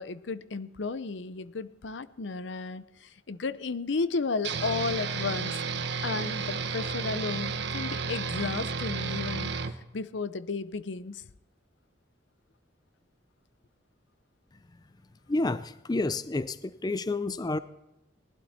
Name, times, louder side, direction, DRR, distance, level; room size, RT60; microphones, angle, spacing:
voice 1, 0.0-5.6 6.0-9.5 9.9-11.2, left 4 dB, 70° left, 0.7 m, -33 dB
sound 1, 4.4-9.7, right 5 dB, 65° right, 1.0 m, -32 dB
voice 2, 15.3-17.6, left 2 dB, 20° left, 0.4 m, -29 dB
19.0 x 12.0 x 4.3 m
head